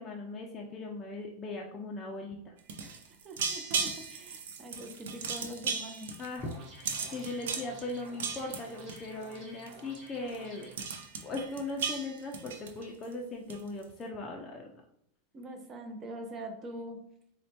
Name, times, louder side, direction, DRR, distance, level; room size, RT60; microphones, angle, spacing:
voice 1, 0.0-2.5 6.2-6.5 7.1-10.7 11.2-14.7, left 2 dB, 20° left, -1 dB, 0.4 m, -39 dB
sound 1, 2.6-9.4 9.7-10.0 10.3-10.4 10.6-13.1 13.5-13.8, right 5 dB, 85° right, 0.4 m, -36 dB
voice 2, 2.8-6.1 7.0-7.1 15.3-17.0, right 1 dB, 25° right, 5 dB, 0.6 m, -44 dB
sound 2, 6.4-10.8, right 1 dB, 45° right, 1.1 m, -51 dB
4.2 x 2.1 x 2.7 m, 0.71 s
supercardioid pair, 140°, 0 cm